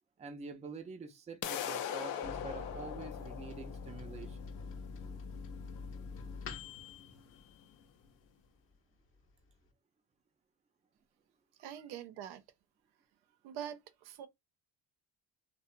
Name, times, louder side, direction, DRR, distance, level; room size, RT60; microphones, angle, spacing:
voice 1, 0.2-4.5, right 4 dB, 20° right, 0.4 m, -46 dB
sound 1, 1.4-7.4, left 9 dB, 80° left, 0.6 m, -42 dB
Microwave oven, 2.2-8.3 8.7-8.8 9.1-9.7, left 4 dB, 35° left, 0.6 m, -46 dB
voice 2, 11.6-12.4 13.4-14.3, right 9 dB, 85° right, 0.5 m, -44 dB
2.7 x 2.0 x 2.4 m
cardioid pair, 100°, 39 cm